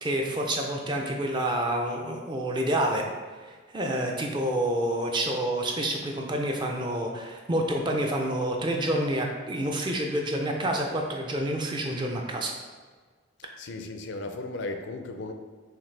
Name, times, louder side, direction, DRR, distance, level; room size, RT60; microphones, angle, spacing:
voice 1, 0.0-3.0 3.4-12.5, right 1 dB, 25° right, 1 dB, 0.4 m, -28 dB
voice 2, 13.6-15.3, left 2 dB, 60° left, 5 dB, 0.4 m, -35 dB
5.8 x 2.5 x 3.2 m, 1.4 s
head